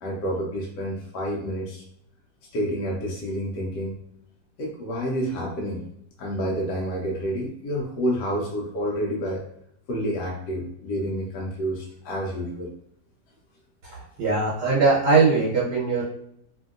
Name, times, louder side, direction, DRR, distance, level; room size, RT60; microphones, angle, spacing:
voice 1, 0.0-1.8 2.5-3.9 4.6-5.9 6.2-9.4 9.9-12.7, equal, 75° left, -2 dB, 1.1 m, -29 dB
voice 2, 14.2-16.0, right 4 dB, 85° right, -6 dB, 1.4 m, -20 dB
2.9 x 2.7 x 2.4 m, 0.70 s
omnidirectional pair, 1.8 m